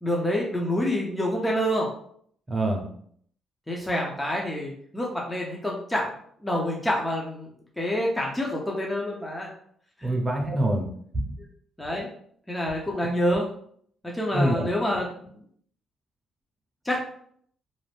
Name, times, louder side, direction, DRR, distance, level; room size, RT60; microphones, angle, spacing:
voice 1, 0.0-1.9 3.7-6.1 6.4-7.5 7.8-9.5 10.0-10.1 11.8-12.1 12.5-13.4 14.1-15.1 16.8-17.0, equal, 10° left, -2 dB, 0.6 m, -27 dB
voice 2, 2.5-2.8 10.0-10.9 11.1-11.2 12.9-13.0 14.3-14.7, right 1 dB, 25° right, 1 dB, 0.8 m, -25 dB
2.6 x 2.0 x 3.3 m, 0.62 s
cardioid pair, 90°, 0 cm